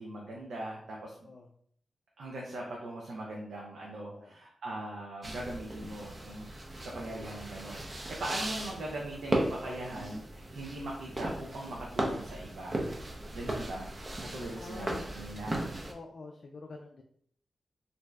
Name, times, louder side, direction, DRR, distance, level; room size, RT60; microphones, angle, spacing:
voice 1, 0.0-1.2 2.2-6.5 6.8-12.9 13.3-13.9 14.2-15.6, right 1 dB, 90° right, -3 dB, 0.5 m, -40 dB
voice 2, 1.2-1.5 4.1-4.4 14.5-15.2 15.8-17.0, left 3 dB, 60° left, 2 dB, 0.3 m, -47 dB
sound 1, 5.2-15.9, right 1 dB, 35° right, 0.5 m, -37 dB
2.6 x 2.2 x 3.1 m, 0.64 s
cardioid pair, 75°, 0 cm